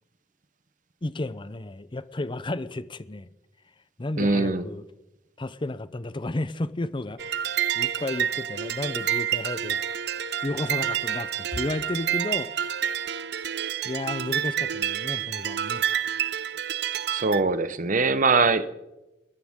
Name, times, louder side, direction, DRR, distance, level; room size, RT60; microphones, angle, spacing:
voice 1, 1.0-3.3 4.0-4.9 5.4-9.8 10.4-12.8 13.8-15.8, left 2 dB, 30° left, 15 dB, 0.7 m, -32 dB
voice 2, 4.2-4.6 17.1-18.7, right 3 dB, 45° right, 13 dB, 1.0 m, -22 dB
sound 1, 7.2-17.4, right 10 dB, 65° right, 0.6 m, -28 dB
29.0 x 13.5 x 3.7 m, 0.98 s
head